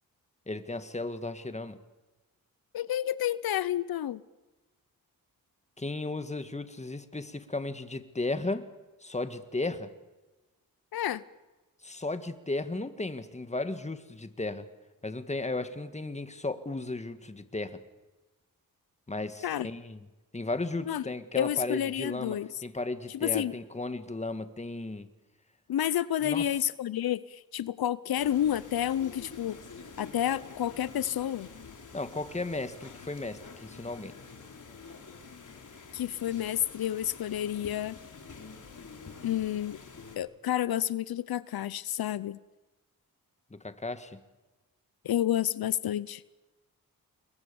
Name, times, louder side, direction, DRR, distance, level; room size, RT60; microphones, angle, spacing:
voice 1, 0.5-1.8 5.8-8.7 9.0-9.9 11.8-14.7 15.0-17.8 19.1-20.1 20.3-25.1 26.2-26.5 31.9-34.1 43.5-44.2, left 2 dB, 20° left, 10 dB, 1.9 m, -35 dB
voice 2, 2.7-4.2 10.9-11.2 19.4-19.7 20.9-21.0 21.4-22.5 23.2-23.6 25.7-29.6 30.0-31.5 35.9-38.0 39.2-39.8 40.2-42.4 45.0-46.2, left 11 dB, 85° left, 18 dB, 0.8 m, -30 dB
sound 1, 28.2-40.2, left 4 dB, 55° left, 3.9 m, -48 dB
29.0 x 22.0 x 7.1 m, 1.1 s
cardioid pair, 90°, 36 cm